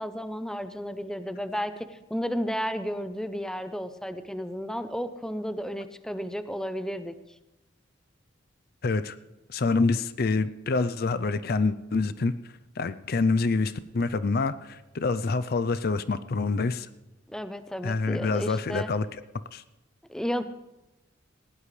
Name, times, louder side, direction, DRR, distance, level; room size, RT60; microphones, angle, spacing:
voice 1, 0.0-7.1 17.3-18.9 20.1-20.4, equal, 5° left, 10 dB, 0.6 m, -33 dB
voice 2, 8.8-9.2 9.5-12.3 12.8-16.9 17.8-19.1 19.5-19.6, left 3 dB, 55° left, 13 dB, 0.5 m, -26 dB
19.5 x 16.5 x 3.3 m, 0.99 s
head